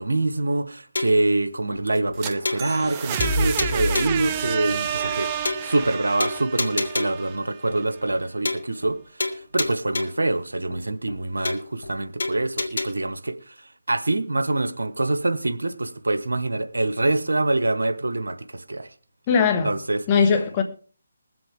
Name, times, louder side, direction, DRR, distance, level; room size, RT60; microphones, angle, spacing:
voice 1, 0.0-5.3 5.6-13.5 13.9-18.9 19.6-20.0, right 2 dB, 85° right, 1.0 m, -25 dB
sound 1, 1.0-1.3 1.7-1.8 2.1-2.2 2.5-2.9 3.2-4.3 4.7-4.8 5.1-5.2 5.5-5.9 6.2-7.3 7.7-7.8 8.1-8.2 8.5-8.9 9.2-10.3 10.7-10.8 11.1-11.2 11.5-11.9 12.2-12.9, left 2 dB, 70° left, 1.7 m, -29 dB
sound 2, 1.9-7.8, right 5 dB, 25° right, 0.8 m, -29 dB
voice 2, 19.3-19.7 20.1-20.6, left 5 dB, 25° left, 1.7 m, -19 dB
21.5 x 7.6 x 3.5 m
figure-of-eight pair, 155°, 0 cm